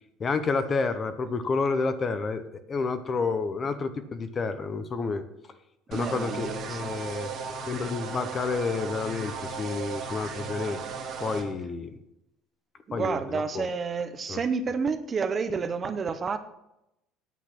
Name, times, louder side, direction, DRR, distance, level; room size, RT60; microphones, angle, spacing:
voice 1, 0.2-2.4 2.7-5.2 5.9-7.4 7.7-10.8 11.2-12.0 12.9-13.7 14.3-14.4, left 4 dB, 25° left, 11 dB, 0.7 m, -29 dB
voice 2, 5.9-6.8 12.9-16.4, right 5 dB, 25° right, 10 dB, 0.6 m, -30 dB
sound 1, 5.9-11.4, right 5 dB, 40° right, 1.7 m, -36 dB
9.2 x 8.1 x 5.9 m, 0.87 s
cardioid pair, 155°, 0 cm